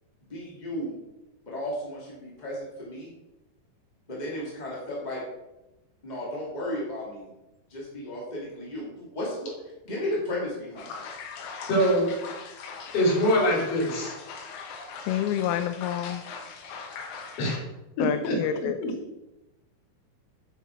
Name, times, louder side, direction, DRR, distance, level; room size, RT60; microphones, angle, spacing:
voice 1, 0.3-0.9 1.4-3.1 4.1-5.2 6.0-7.3 7.7-9.5 9.8-11.2, left 1 dB, 20° left, -5 dB, 1.1 m, -34 dB
sound 1, 10.8-17.6, left 5 dB, 65° left, 2.2 m, -40 dB
voice 2, 11.7-12.1 12.9-14.1 17.4-17.6 18.0-18.3 18.8-18.9, equal, 40° left, -4 dB, 3.5 m, -23 dB
voice 3, 15.0-16.2 18.0-18.8, left 10 dB, 85° left, 9 dB, 2.4 m, -28 dB
9.5 x 7.2 x 4.4 m, 0.99 s
omnidirectional pair, 4.4 m